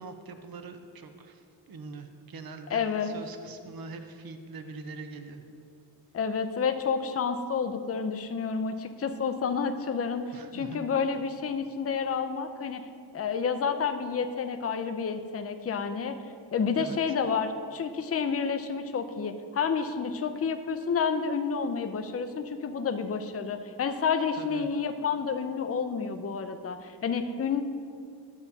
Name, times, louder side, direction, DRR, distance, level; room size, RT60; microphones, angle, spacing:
voice 1, 0.0-5.4 10.3-10.8 16.8-17.2 24.4-24.7, right 3 dB, 55° right, 7 dB, 0.6 m, -43 dB
voice 2, 2.7-3.2 6.1-12.9 13.1-16.2 16.5-27.6, left 6 dB, 35° left, 8 dB, 0.4 m, -30 dB
11.0 x 6.9 x 2.7 m, 2.3 s
wide cardioid pair, 85°, 44 cm